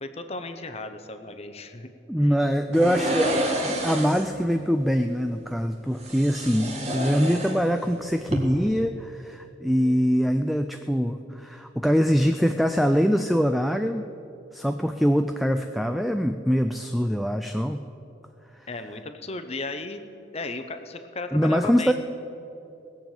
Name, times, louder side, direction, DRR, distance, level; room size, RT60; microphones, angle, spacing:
voice 1, 0.0-1.9 2.2-2.3 18.7-20.0 20.3-21.9, left 2 dB, 30° left, 8 dB, 0.8 m, -35 dB
voice 2, 2.1-3.4 3.6-14.0 14.5-17.9 18.5-18.7 21.3-21.9, equal, ahead, 7 dB, 0.3 m, -23 dB
sound 1, 2.7-4.4 6.0-7.9 8.2-8.4, equal, 35° right, 1.7 m, -29 dB
18.5 x 7.2 x 9.0 m, 2.8 s
head